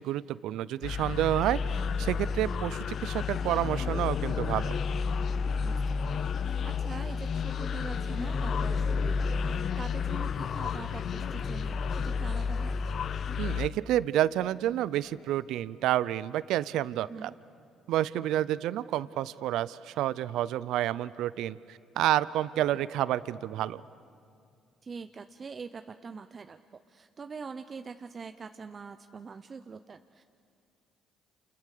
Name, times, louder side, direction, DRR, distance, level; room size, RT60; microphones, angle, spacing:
voice 1, 0.0-4.8 13.4-17.3 17.9-23.8, right 13 dB, 75° right, 18 dB, 0.6 m, -29 dB
sound 1, 0.8-13.7, left 5 dB, 55° left, 0.8 m, -31 dB
voice 2, 5.6-12.8 17.1-17.3 22.7-22.8 24.8-30.2, right 5 dB, 40° right, 9 dB, 0.7 m, -44 dB
29.0 x 28.5 x 6.7 m, 2.4 s
supercardioid pair, 70°, 0 cm